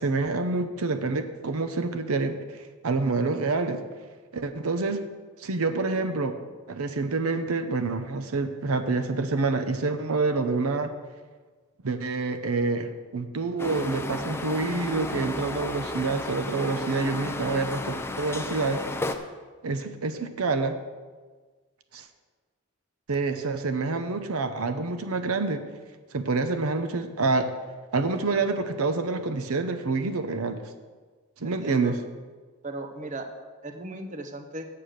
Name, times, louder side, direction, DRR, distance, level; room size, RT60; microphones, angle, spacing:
voice 1, 0.0-2.6 2.8-3.8 4.3-5.0 5.4-6.4 6.7-10.9 11.8-18.8 19.6-20.8 21.9-22.0 23.1-25.6 26.1-27.5 27.9-30.6 31.4-32.0, right 3 dB, 90° right, 9 dB, 0.8 m, -27 dB
sound 1, 13.6-19.1, left 2 dB, 10° left, 0.5 m, -33 dB
voice 2, 31.4-31.9 32.6-33.3 33.6-34.7, right 2 dB, 35° right, 6 dB, 0.8 m, -37 dB
8.5 x 7.5 x 6.5 m, 1.4 s
head